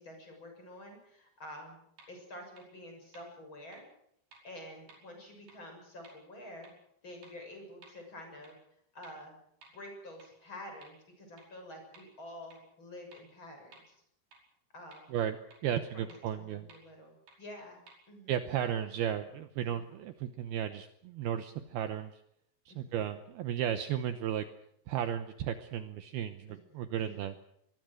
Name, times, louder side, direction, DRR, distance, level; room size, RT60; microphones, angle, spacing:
voice 1, 0.0-1.8 2.1-3.8 4.4-6.7 7.0-8.6 8.9-9.4 9.7-14.0 14.7-15.2 15.6-17.8 18.1-18.4 19.6-19.9 22.7-23.1 26.5-27.3, left 1 dB, 25° left, 3 dB, 7.3 m, -49 dB
sound 1, 2.0-2.1 2.6-2.7 3.1-3.2 3.7-3.8 4.3-4.4 4.9-5.0 5.5-5.6 6.0-6.1 6.6-6.7 7.2-7.3 7.8-7.9 8.4-8.5 9.0-9.1 9.6-9.7 10.2-10.3 10.8-10.9 11.4-11.5 11.9-12.0 12.5-12.6 13.1-13.2 13.7-13.8 14.3-14.4 14.9-15.0 15.5-15.6 16.1-16.2 16.7-16.8 17.3-17.4 17.9-18.0, right 3 dB, 50° right, 7.0 m, -56 dB
voice 2, 15.6-16.7 18.3-22.1 22.7-24.5 24.9-27.3, right 10 dB, 85° right, 9 dB, 2.2 m, -34 dB
24.0 x 21.5 x 6.5 m, 0.72 s
omnidirectional pair, 5.9 m